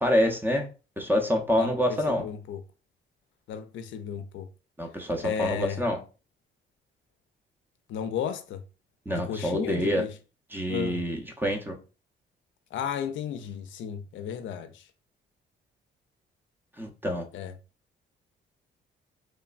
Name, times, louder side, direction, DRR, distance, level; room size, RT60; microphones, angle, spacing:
voice 1, 0.0-0.7 1.0-2.3 4.8-6.0 9.1-10.0 10.5-11.8 16.8-17.2, equal, 10° right, 0.5 m, -26 dB
voice 2, 1.6-2.6 3.5-4.5 5.2-5.8 7.9-8.6 9.1-10.1 10.7-11.0 12.7-14.9 17.3-17.5, left 8 dB, 75° left, 0.4 m, -34 dB
3.1 x 2.1 x 2.4 m
cardioid pair, 90°, 20 cm